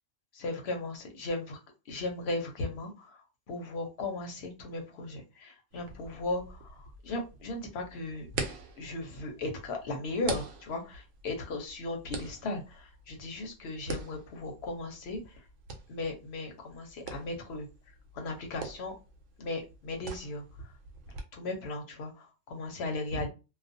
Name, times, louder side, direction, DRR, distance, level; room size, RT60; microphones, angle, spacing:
voice 1, 0.3-1.6 1.9-8.3 8.8-15.4 15.9-17.7 18.1-18.9 19.4-20.7 21.3-23.3, left 2 dB, 60° left, 3 dB, 1.0 m, -37 dB
sound 1, 5.7-21.2, right 4 dB, 85° right, 1.0 m, -44 dB
2.4 x 2.3 x 2.6 m, 0.29 s
omnidirectional pair, 1.2 m